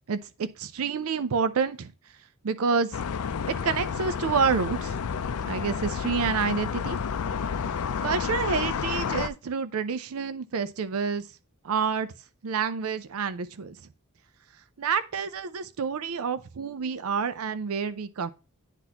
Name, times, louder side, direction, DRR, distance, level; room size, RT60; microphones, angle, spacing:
voice 1, 0.1-1.9 2.4-3.0 3.5-5.0 5.4-7.0 8.0-11.3 11.6-12.1 12.4-13.8 14.8-18.3, right 5 dB, 75° right, 0.5 m, -28 dB
sound 1, 2.9-9.3, left 6 dB, 85° left, 0.5 m, -30 dB
9.7 x 4.0 x 2.9 m
head